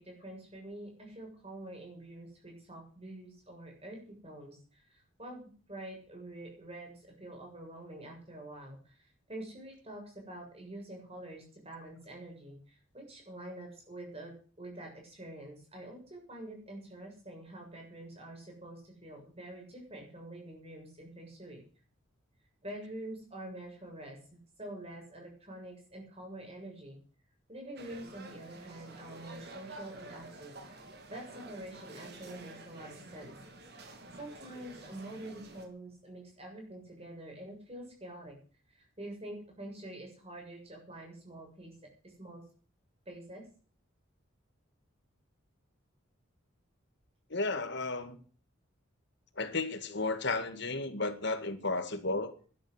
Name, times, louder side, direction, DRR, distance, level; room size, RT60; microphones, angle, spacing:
voice 1, 0.0-21.6 22.6-24.2 24.6-27.0 27.5-30.6 31.1-33.3 34.2-38.3 38.7-41.7 42.2-42.4 43.1-43.4, right 1 dB, 30° right, 7.3 m, -46 dB
sound 1, 27.8-35.7, right 2 dB, 50° right, 3.2 m, -50 dB
voice 2, 47.3-48.2 49.4-52.3, left 3 dB, 55° left, 2.0 m, -33 dB
12.0 x 11.5 x 8.0 m
head